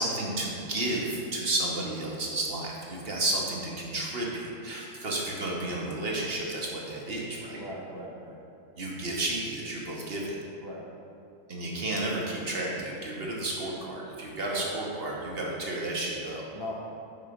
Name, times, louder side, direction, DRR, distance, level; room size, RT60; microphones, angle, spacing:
voice 1, 0.0-7.6 8.8-10.3 11.5-16.4, right 2 dB, 45° right, -3 dB, 0.9 m, -32 dB
voice 2, 7.6-8.4 10.6-10.8 14.5-14.7 16.5-16.7, left 1 dB, 40° left, -5 dB, 0.3 m, -39 dB
5.8 x 4.7 x 5.0 m, 2.6 s
omnidirectional pair, 1.6 m